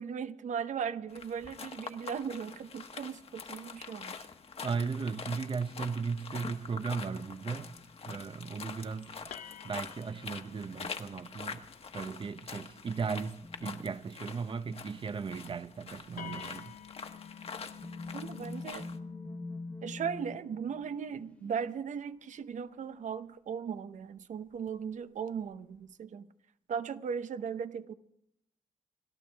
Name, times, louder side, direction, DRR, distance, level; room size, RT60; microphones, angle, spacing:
voice 1, 0.0-4.3 18.1-18.9 19.8-26.3 26.7-27.9, right 7 dB, 70° right, 0.9 m, -37 dB
sound 1, 1.1-19.0, left 5 dB, 50° left, 1.2 m, -45 dB
sound 2, 4.5-8.8 10.0-10.2 11.1-11.6 12.1-12.5 12.9-14.5 14.8-15.7 16.5-16.6 16.9-21.8, left 2 dB, 10° left, 0.8 m, -48 dB
voice 2, 4.6-7.7 8.0-9.3 9.6-11.7 11.9-16.7, right 5 dB, 40° right, 0.7 m, -36 dB
sound 3, 8.5-8.7 9.3-13.6 15.3-15.5 15.7-15.8 16.2-23.2 24.5-24.7 25.3-25.8, left 10 dB, 85° left, 0.6 m, -52 dB
29.5 x 12.0 x 3.5 m
cardioid pair, 95°, 13 cm